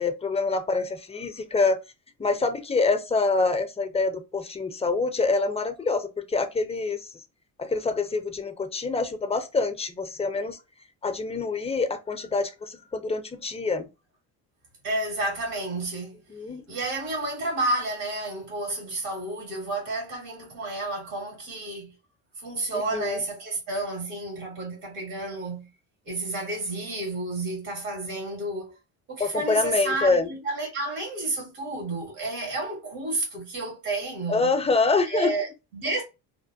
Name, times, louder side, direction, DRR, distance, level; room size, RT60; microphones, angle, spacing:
voice 1, 0.0-1.8 2.2-7.1 7.6-10.6 11.0-13.9 16.3-16.7 22.7-23.2 29.2-30.3 34.3-35.3, left 3 dB, 15° left, 0.5 m, -26 dB
voice 2, 14.8-16.2 16.7-21.9 22.4-25.7 26.0-28.8 29.1-34.5 35.0-36.0, right 2 dB, 90° right, 1.6 m, -31 dB
2.8 x 2.1 x 2.5 m
supercardioid pair, 70°, 39 cm